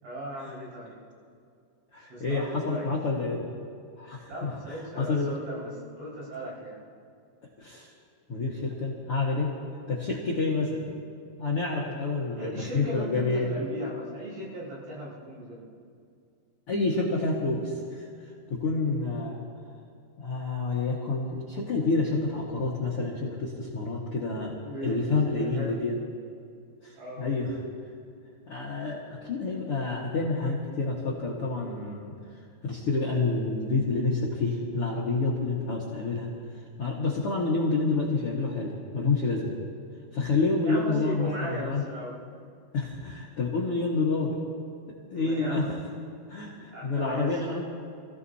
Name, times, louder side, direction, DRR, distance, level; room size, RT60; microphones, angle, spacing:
voice 1, 0.0-1.0 2.0-2.9 4.3-6.8 12.4-15.7 24.6-25.8 26.9-27.3 40.6-42.2 45.1-45.8 46.7-47.4, right 1 dB, 80° right, -7 dB, 7.5 m, -37 dB
voice 2, 1.9-3.4 4.0-5.4 7.6-7.9 8.3-9.5 9.9-10.8 11.4-13.5 16.7-18.1 18.5-19.4 20.2-26.0 26.8-27.6 28.5-32.1 32.6-36.3 36.8-39.5 40.1-41.8 42.7-44.3 45.1-45.7 46.3-47.6, left 3 dB, 60° left, -4 dB, 1.5 m, -28 dB
28.0 x 16.5 x 2.8 m, 2.3 s
omnidirectional pair, 5.2 m